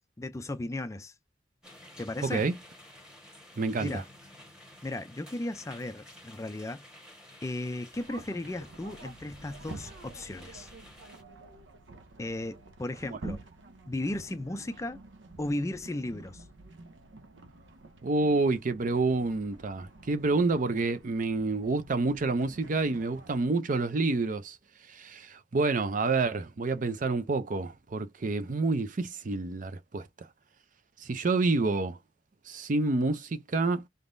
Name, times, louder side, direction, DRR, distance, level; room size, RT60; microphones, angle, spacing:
voice 1, 0.2-1.1 2.0-2.5 3.8-4.1 4.8-6.8 7.4-10.7 12.2-13.4 13.9-15.0 15.4-16.5, left 1 dB, 15° left, 0.4 m, -35 dB
sound 1, 1.6-11.2, left 1 dB, 5° right, 1.2 m, -52 dB
voice 2, 2.2-2.5 3.6-4.0 13.2-13.4 18.0-24.6 24.9-30.3 31.0-32.0 32.5-33.8, right 3 dB, 45° right, 0.5 m, -28 dB
sound 2, 7.9-23.4, right 2 dB, 80° right, 0.7 m, -50 dB
3.9 x 3.6 x 2.5 m
head